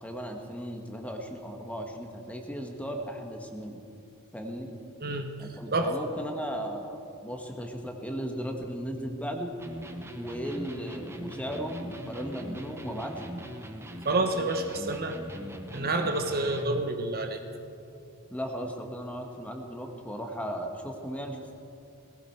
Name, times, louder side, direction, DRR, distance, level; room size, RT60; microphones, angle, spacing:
voice 1, 0.0-3.9 4.3-4.7 5.4-9.5 10.1-13.3 18.3-21.5, equal, 5° left, 3 dB, 1.3 m, -36 dB
voice 2, 5.0-5.9 14.0-15.2 15.7-17.4, right 2 dB, 45° right, 5 dB, 1.0 m, -29 dB
Electric guitar, 9.6-16.9, equal, 10° right, 0.9 m, -41 dB
18.5 x 16.5 x 4.6 m, 2.6 s
head